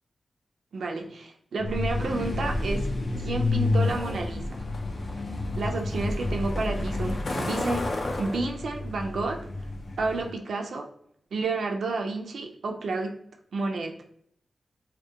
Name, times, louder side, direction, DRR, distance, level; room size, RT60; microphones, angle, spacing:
voice 1, 0.7-2.9 3.2-4.5 5.5-9.5 10.0-10.9 11.3-13.2 13.5-14.0, right 3 dB, 90° right, 2 dB, 0.3 m, -30 dB
Truck, 1.6-10.3, left 2 dB, 55° left, 0.4 m, -29 dB
2.3 x 2.1 x 2.7 m, 0.67 s
wide cardioid pair, 105°, 0 cm